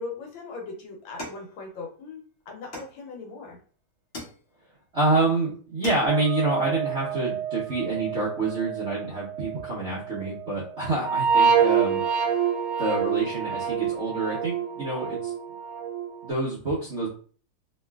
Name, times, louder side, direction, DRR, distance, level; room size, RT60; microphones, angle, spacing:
voice 1, 0.0-3.6, left 3 dB, 70° left, 1 dB, 1.4 m, -39 dB
sound 1, 1.2-2.1 2.7-3.5 4.1-4.8 5.3-5.4 5.6-6.4, left 1 dB, 55° left, 0.7 m, -41 dB
voice 2, 4.9-12.4 12.8-15.3 16.2-17.1, right 2 dB, 60° right, -8 dB, 0.7 m, -27 dB
sound 2, 6.1-10.5 10.8-16.3, right 7 dB, 85° right, 1.5 m, -27 dB
3.0 x 2.9 x 2.3 m, 0.42 s
omnidirectional pair, 2.3 m